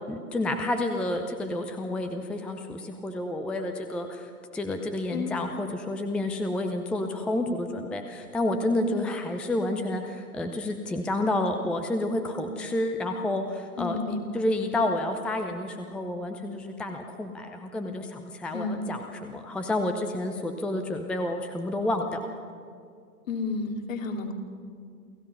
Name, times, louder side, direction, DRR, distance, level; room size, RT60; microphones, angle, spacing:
voice 1, 0.1-14.0 14.3-22.3, left 1 dB, ahead, 6 dB, 0.6 m, -30 dB
voice 2, 13.8-14.3 18.5-18.8 23.3-24.3, left 4 dB, 55° left, 3 dB, 3.1 m, -31 dB
28.5 x 16.0 x 5.7 m, 2.2 s
figure-of-eight pair, 110°, 46 cm